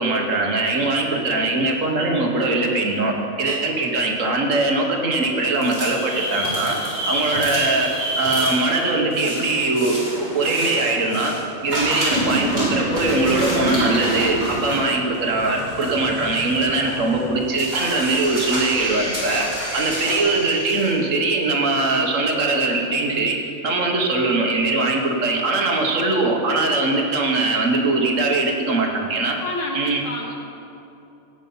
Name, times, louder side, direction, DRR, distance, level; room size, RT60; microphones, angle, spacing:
voice 1, 0.0-11.3 11.6-19.5 19.7-23.4 23.6-29.4 29.7-30.0, right 2 dB, 65° right, 1 dB, 1.5 m, -21 dB
sound 1, 5.5-11.4 11.7-20.9, right 1 dB, 45° right, 3.4 m, -27 dB
voice 2, 29.4-30.3, left 2 dB, 60° left, 0 dB, 1.6 m, -29 dB
16.0 x 5.5 x 5.5 m, 2.8 s
omnidirectional pair, 1.5 m